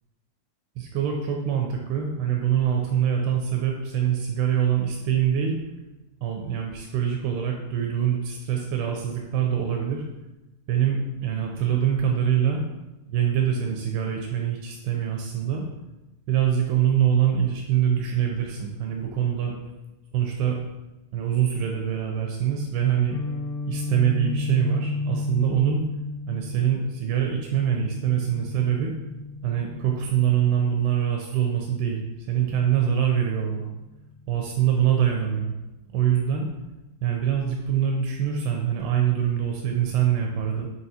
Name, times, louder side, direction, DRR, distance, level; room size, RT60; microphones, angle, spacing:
voice 1, 0.8-5.6 6.2-10.0 10.7-12.6 13.1-15.7 16.3-19.5 20.1-20.6 21.1-23.2 23.7-25.8 26.3-28.9 29.4-33.7 34.3-35.5 35.9-36.5 37.0-40.7, right 9 dB, 80° right, 1 dB, 2.5 m, -24 dB
Guitar, 23.1-30.9, left 4 dB, 85° left, 3.4 m, -33 dB
7.6 x 4.6 x 2.8 m, 0.99 s
omnidirectional pair, 5.0 m